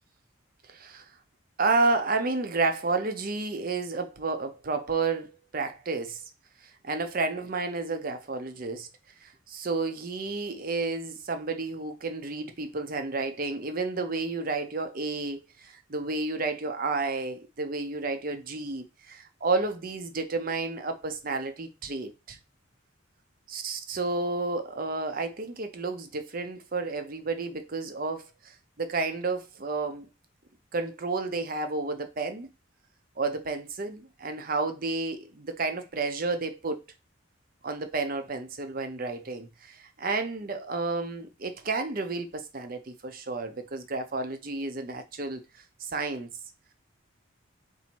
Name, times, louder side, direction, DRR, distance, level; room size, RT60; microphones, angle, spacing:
voice 1, 0.7-1.1 1.6-6.2 6.6-8.9 9.2-22.4 23.5-30.1 30.7-32.5 33.2-36.8 37.6-45.4 45.8-46.3, right 3 dB, 40° right, 0.6 m, -31 dB
4.1 x 2.7 x 4.4 m
head